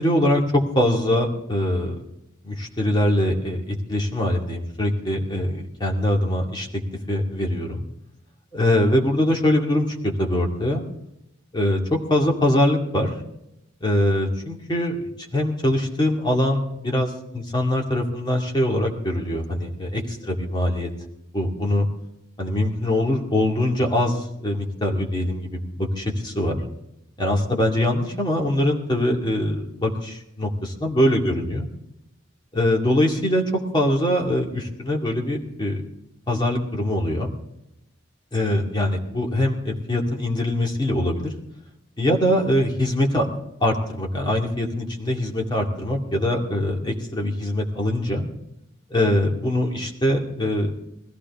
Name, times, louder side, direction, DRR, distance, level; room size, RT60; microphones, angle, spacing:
voice 1, 0.0-2.0 2.4-6.7 7.1-7.8 8.5-10.9 11.5-13.1 13.8-17.1 17.3-20.0 20.3-20.9 21.3-21.9 22.4-26.6 27.2-31.7 32.5-33.4 33.7-35.8 36.3-37.3 38.3-41.3 42.0-43.3 43.6-48.3 48.9-50.7, left 1 dB, 25° left, 0 dB, 2.2 m, -23 dB
20.5 x 15.0 x 3.6 m, 0.86 s
head